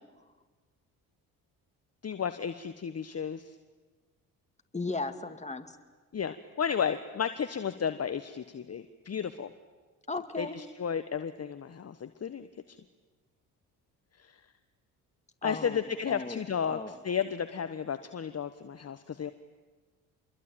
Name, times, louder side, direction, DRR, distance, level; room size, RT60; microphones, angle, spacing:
voice 1, 2.0-3.6 6.1-9.5 10.4-12.8 14.2-14.3 15.4-19.3, left 7 dB, 35° left, 11 dB, 1.3 m, -33 dB
voice 2, 4.7-5.7 10.1-10.6 15.4-15.8 16.1-17.0, left 3 dB, 15° left, 7 dB, 2.5 m, -36 dB
27.0 x 22.0 x 9.1 m, 1.4 s
hypercardioid pair, 55°, 45 cm